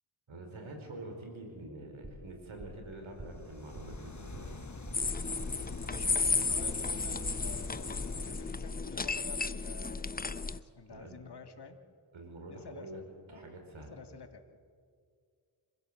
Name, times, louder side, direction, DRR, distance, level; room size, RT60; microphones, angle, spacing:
voice 1, 0.3-4.7 10.9-11.2 12.1-13.0 13.3-14.0, right 2 dB, 70° right, 4 dB, 5.0 m, -46 dB
sound 1, 2.0-2.3 2.6-2.9 3.2-3.5 3.7-4.0 4.3-4.6 4.8-5.7 5.9-6.2 6.5-6.8 7.0-7.3, right 1 dB, 30° right, 6.8 m, -47 dB
sound 2, 3.2-8.9, left 4 dB, 35° left, 1.8 m, -45 dB
sound 3, 4.9-10.6, left 4 dB, 20° left, 0.7 m, -33 dB
voice 2, 5.8-11.8 12.5-14.5, left 5 dB, 50° left, 7 dB, 2.2 m, -50 dB
26.0 x 16.0 x 7.8 m, 2.2 s
cardioid pair, 55°, 49 cm